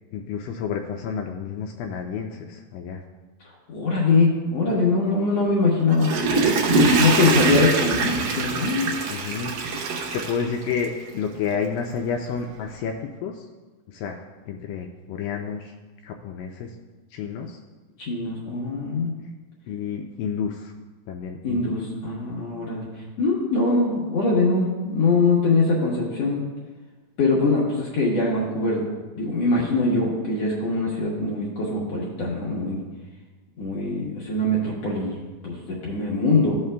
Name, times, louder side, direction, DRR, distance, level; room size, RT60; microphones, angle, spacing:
voice 1, 0.1-3.0 9.1-13.5 13.9-15.7 16.0-16.7 17.1-17.6 19.7-20.7 21.1-21.7, left 6 dB, 80° left, 3 dB, 2.0 m, -30 dB
voice 2, 3.7-6.1 6.7-8.9 18.0-19.1 21.4-22.9 23.2-26.4 27.2-28.8 29.2-32.8 33.6-36.6, left 3 dB, 65° left, -5 dB, 1.8 m, -22 dB
Water / Toilet flush, 5.8-11.1 11.5-11.6, right 3 dB, 70° right, 2.4 m, -23 dB
15.5 x 5.6 x 2.2 m, 1.3 s
omnidirectional pair, 4.3 m